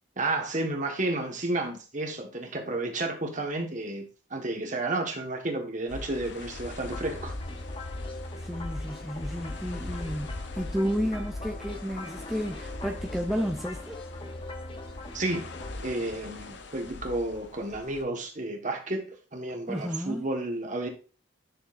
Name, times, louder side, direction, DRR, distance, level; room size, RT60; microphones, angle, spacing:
voice 1, 0.2-7.3 15.1-15.5 15.8-20.9, right 2 dB, 40° right, 1.5 m, -31 dB
sound 1, 5.9-18.0, left 2 dB, 55° left, 0.8 m, -40 dB
sound 2, 6.9-15.7, left 2 dB, 25° left, 0.9 m, -42 dB
voice 2, 8.4-14.0 19.7-20.3, equal, ahead, 0.5 m, -32 dB
10.0 x 6.3 x 2.6 m
head